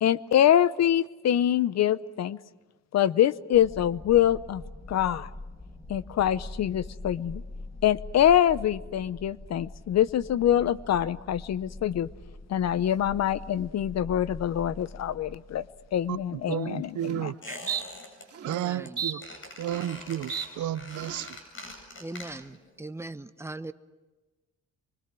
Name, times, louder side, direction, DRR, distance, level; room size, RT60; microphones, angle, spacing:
voice 1, 0.0-2.4 2.9-4.6 4.9-5.3 5.9-7.4 7.8-12.1 12.5-15.6 15.9-17.3, left 10 dB, 60° left, 17 dB, 0.8 m, -24 dB
sound 1, 3.5-16.4, left 2 dB, 10° left, 2.7 m, -43 dB
sound 2, 16.5-16.6 17.0-17.3 17.7-17.8 18.3-18.6 19.0-20.0 20.3-20.5 20.9-21.3, right 8 dB, 55° right, 2.6 m, -34 dB
voice 2, 16.5-17.4 18.4-19.3 19.6-21.4, right 12 dB, 75° right, 15 dB, 0.9 m, -32 dB
Squeak, 17.4-18.2 18.5-18.9 19.2-22.6 22.9-23.0, left 2 dB, 40° left, 7.8 m, -44 dB
voice 3, 18.4-19.0 22.0-23.7, right 2 dB, 10° right, 11 dB, 1.0 m, -40 dB
25.5 x 24.0 x 6.1 m, 1.1 s
cardioid pair, 90°, 30 cm